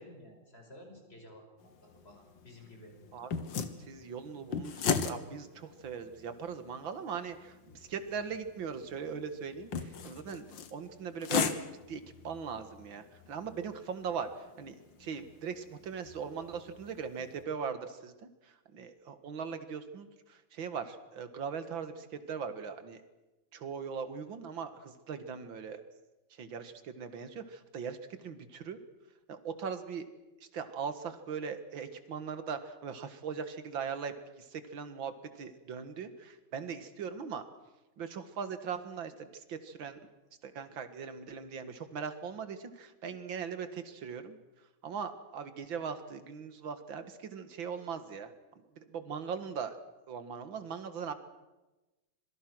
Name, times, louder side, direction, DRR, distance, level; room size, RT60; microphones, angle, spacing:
voice 1, 0.0-2.9, left 1 dB, 30° left, 2 dB, 5.8 m, -53 dB
sound 1, 1.6-17.4, left 6 dB, 65° left, 2.1 m, -39 dB
voice 2, 3.8-10.5 10.7-11.5 11.9-23.0 23.5-25.8 26.3-28.8 29.3-30.1 30.4-37.4 38.0-40.0 40.4-44.4 44.8-48.3 48.8-49.8 50.1-51.1, right 6 dB, 70° right, 10 dB, 2.4 m, -40 dB
26.5 x 22.5 x 6.2 m, 1.1 s
omnidirectional pair, 2.2 m